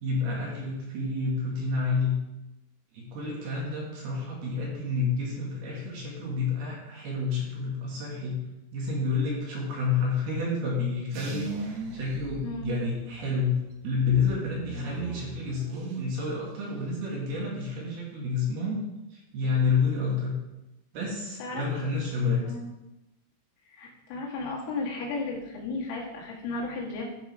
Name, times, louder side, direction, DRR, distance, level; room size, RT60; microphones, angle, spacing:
voice 1, 0.0-2.2 2.9-8.4 8.7-18.8 19.1-20.3 20.9-22.5, left 4 dB, 60° right, -3 dB, 3.2 m, -29 dB
sound 1, 11.1-13.2 13.6-16.2 16.5-17.1, right 3 dB, 85° right, 3.8 m, -39 dB
voice 2, 12.4-12.8 21.4-21.6 22.4-22.7 23.8-27.0, left 3 dB, 85° left, -4 dB, 4.5 m, -34 dB
12.5 x 5.2 x 4.7 m, 0.97 s
omnidirectional pair, 5.8 m